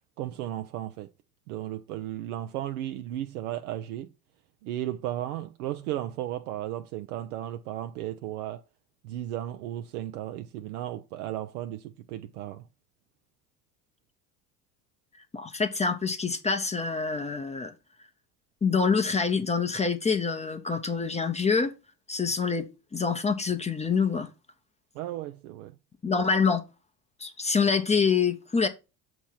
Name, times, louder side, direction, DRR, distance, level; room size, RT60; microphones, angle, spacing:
voice 1, 0.2-1.1 1.5-4.1 4.6-8.6 9.0-12.6 24.9-25.7, right 13 dB, 70° right, 0.6 m, -35 dB
voice 2, 15.3-17.7 18.6-21.7 22.1-24.3 26.0-26.6 27.2-28.7, left 5 dB, 15° left, 0.7 m, -26 dB
7.1 x 3.1 x 5.5 m
hypercardioid pair, 65°, 47 cm